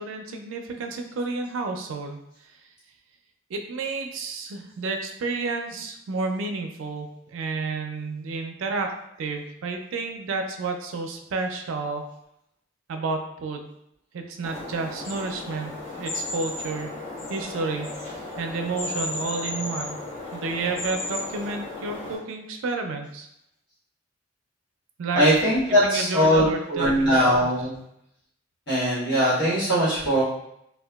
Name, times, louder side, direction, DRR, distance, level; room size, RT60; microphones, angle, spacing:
voice 1, 0.0-2.2 3.5-12.0 12.9-13.7 14.1-16.9 17.3-17.9 18.4-20.0 20.3-23.3 25.0-25.3 25.8-27.5, right 3 dB, 75° right, 4 dB, 0.4 m, -31 dB
sound 1, 14.4-22.2, left 2 dB, 35° left, 1.0 m, -34 dB
voice 2, 25.1-27.8 28.7-30.2, equal, 55° left, -10 dB, 1.3 m, -21 dB
2.8 x 2.2 x 2.2 m, 0.77 s
head